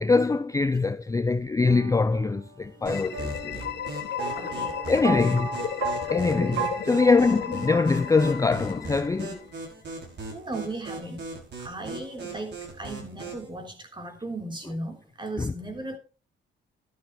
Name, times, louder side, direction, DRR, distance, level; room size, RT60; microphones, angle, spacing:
voice 1, 0.0-3.7 4.9-5.5 6.1-6.6 6.9-9.4 15.4-15.5, left 4 dB, 15° left, 0.5 m, -23 dB
sound 1, 1.7-8.6, right 3 dB, 85° right, 1.6 m, -35 dB
sound 2, 2.8-9.6, left 9 dB, 60° left, 1.0 m, -35 dB
sound 3, 2.9-13.5, right 3 dB, 60° right, 5.9 m, -39 dB
voice 2, 4.3-4.8 6.4-6.7 10.3-11.3 11.6-16.0, right 2 dB, 25° right, 3.6 m, -36 dB
12.5 x 11.5 x 3.1 m
cardioid pair, 90°, 20 cm